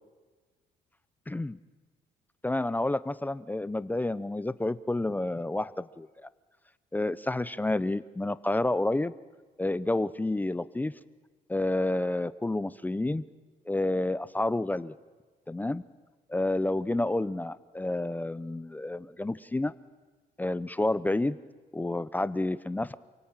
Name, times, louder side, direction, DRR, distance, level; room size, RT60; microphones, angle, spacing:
voice 1, 1.3-1.6 2.4-6.3 6.9-9.1 9.6-10.9 11.5-13.2 13.7-14.9 15.5-15.8 16.3-19.7 20.4-21.4 21.7-22.9, left 2 dB, 10° left, 16 dB, 0.7 m, -29 dB
29.0 x 17.5 x 8.9 m, 1.4 s
cardioid pair, 110°, 17 cm